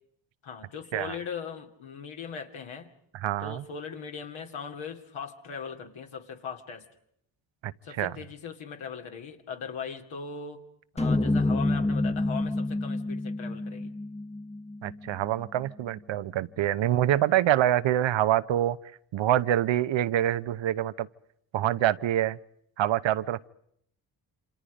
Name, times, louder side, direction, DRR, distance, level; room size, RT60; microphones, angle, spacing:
voice 1, 0.4-2.9 3.4-6.9 7.8-10.6 10.9-14.0 16.6-16.7, left 6 dB, 70° left, 3 dB, 2.8 m, -39 dB
voice 2, 3.2-3.6 7.6-7.7 8.0-8.1 14.8-18.8 19.1-21.1 21.5-22.4 22.8-23.5, right 12 dB, 65° right, 14 dB, 0.9 m, -25 dB
sound 1, 11.0-15.3, left 2 dB, 15° left, 1.2 m, -28 dB
28.0 x 25.5 x 5.2 m, 0.72 s
supercardioid pair, 50°, 49 cm